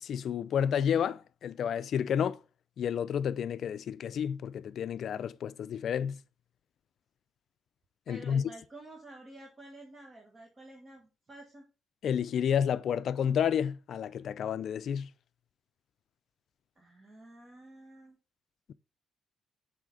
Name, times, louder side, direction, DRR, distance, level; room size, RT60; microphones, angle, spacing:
voice 1, 0.0-2.4 2.8-6.2 8.1-8.5 12.0-15.1, left 8 dB, 65° left, 0.4 m, -30 dB
voice 2, 8.1-11.7 16.8-18.2, right 1 dB, 30° right, 1.6 m, -50 dB
7.4 x 4.2 x 3.9 m
cardioid pair, 90°, 0 cm